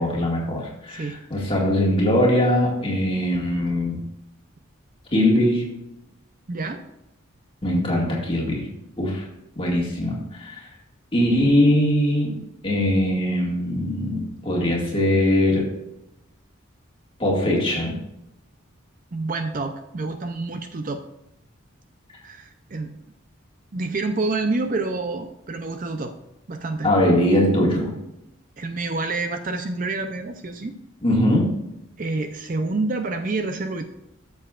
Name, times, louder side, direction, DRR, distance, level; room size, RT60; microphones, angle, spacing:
voice 1, 0.0-4.0 5.1-5.7 7.6-8.7 9.0-9.3 9.6-10.7 11.1-12.3 12.6-15.7 17.2-18.0 26.8-27.9 31.0-31.5, left 1 dB, 25° left, -2 dB, 1.9 m, -21 dB
voice 2, 0.9-1.2 6.5-6.8 19.1-21.0 22.2-22.9 23.7-26.1 26.5-26.9 28.6-30.8 32.0-33.9, right 3 dB, 40° right, 7 dB, 0.5 m, -28 dB
13.0 x 7.0 x 2.4 m, 0.88 s
head